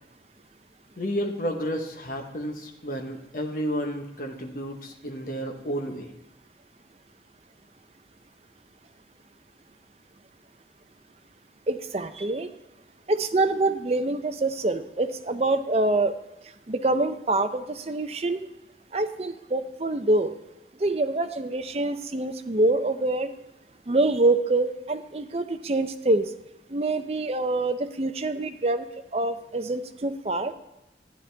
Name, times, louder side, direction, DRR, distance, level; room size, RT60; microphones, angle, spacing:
voice 1, 1.0-6.1, equal, 50° left, 3 dB, 1.1 m, -31 dB
voice 2, 11.7-12.5 13.1-16.2 16.7-18.4 18.9-20.3 20.8-23.3 23.9-26.3 26.7-28.9 29.1-30.5, right 2 dB, 35° right, 8 dB, 0.6 m, -25 dB
11.5 x 10.0 x 3.4 m, 1.0 s
head